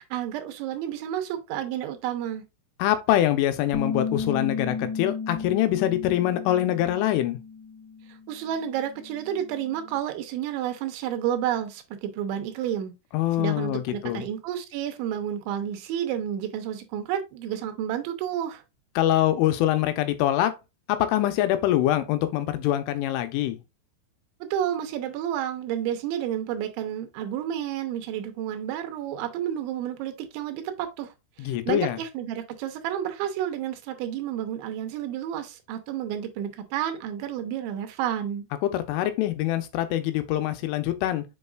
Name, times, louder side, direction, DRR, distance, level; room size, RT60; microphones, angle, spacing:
voice 1, 0.0-2.4 8.1-12.9 13.4-18.6 24.5-31.1 31.4-38.4, right 10 dB, 85° right, 3.1 m, -30 dB
voice 2, 2.8-7.4 13.1-14.2 19.0-20.5 20.9-23.6 31.4-32.0 38.6-41.2, left 13 dB, 85° left, 3.3 m, -24 dB
Bass guitar, 3.7-10.0, left 5 dB, 70° left, 2.5 m, -34 dB
7.1 x 5.5 x 2.4 m
omnidirectional pair, 5.5 m